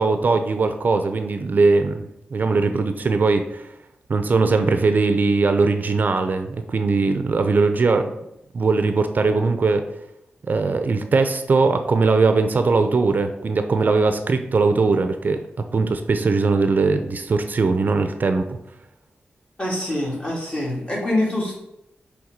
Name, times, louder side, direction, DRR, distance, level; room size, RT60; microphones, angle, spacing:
voice 1, 0.0-2.1 2.3-3.7 4.1-8.1 8.5-9.8 10.5-15.4 15.7-18.6, right 4 dB, 55° right, 8 dB, 0.6 m, -20 dB
voice 2, 19.6-21.5, left 1 dB, 30° left, -4 dB, 2.9 m, -24 dB
7.8 x 3.5 x 5.2 m, 0.85 s
wide cardioid pair, 95°, 4 cm